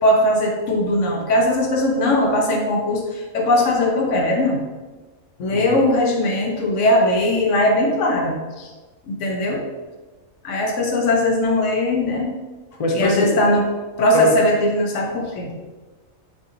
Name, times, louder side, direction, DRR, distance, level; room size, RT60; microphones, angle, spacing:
voice 1, 0.0-4.6 5.4-8.4 9.1-9.6 10.4-12.3 12.9-13.7 14.0-15.5, left 1 dB, 70° left, 1 dB, 1.0 m, -19 dB
voice 2, 12.8-13.3 14.1-14.3, left 2 dB, 40° left, 0 dB, 0.5 m, -21 dB
5.5 x 2.9 x 2.5 m, 1.2 s
omnidirectional pair, 1.4 m